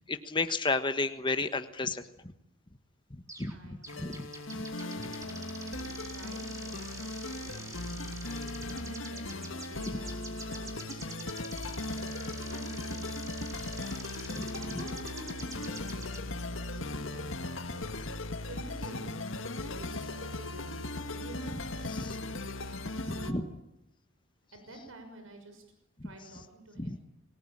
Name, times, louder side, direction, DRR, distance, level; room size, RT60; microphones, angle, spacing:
voice 1, 0.1-2.3 3.1-4.3 4.5-4.7 9.9-10.0 14.2-14.5 21.5-21.6 21.8-22.2 23.1-23.5 26.0-26.1 26.8-27.0, left 3 dB, 25° left, 9 dB, 1.3 m, -33 dB
sound 1, 3.3-3.6 3.8-16.2, right 2 dB, 15° right, 4.4 m, -47 dB
voice 2, 3.5-4.2 4.5-6.8 7.2-11.4 11.8-13.7 14.1-18.0 18.4-19.1 19.6-22.4 22.8-23.5 24.5-25.6 26.0-27.0, right 2 dB, 85° right, 6 dB, 6.1 m, -50 dB
sound 2, 3.9-23.3, left 2 dB, 70° left, 1.8 m, -38 dB
Wind instrument woodwind instrument, 9.2-11.6 11.9-16.0, left 1 dB, 40° left, 4.2 m, -54 dB
28.5 x 19.5 x 8.9 m, 0.85 s
head